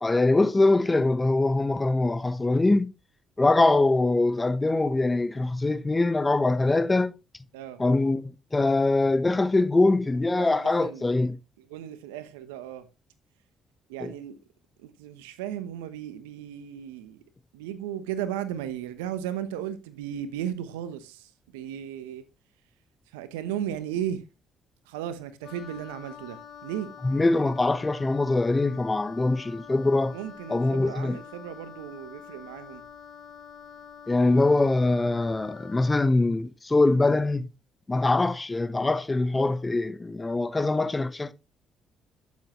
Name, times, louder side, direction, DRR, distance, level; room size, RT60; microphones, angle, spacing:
voice 1, 0.0-2.9 3.4-7.1 7.8-8.2 8.5-11.4 14.0-14.1 27.0-30.2 30.5-31.2 34.1-37.5 37.9-41.3, left 2 dB, 20° left, 0.9 m, -23 dB
voice 2, 10.4-11.1 11.7-12.9 13.9-14.4 14.8-17.2 17.5-22.3 23.1-24.2 24.9-26.9 30.1-32.8, right 10 dB, 85° right, 0.9 m, -35 dB
Wind instrument woodwind instrument, 25.4-36.1, left 7 dB, 60° left, 2.6 m, -46 dB
11.5 x 7.4 x 3.1 m
hypercardioid pair, 50°, 0 cm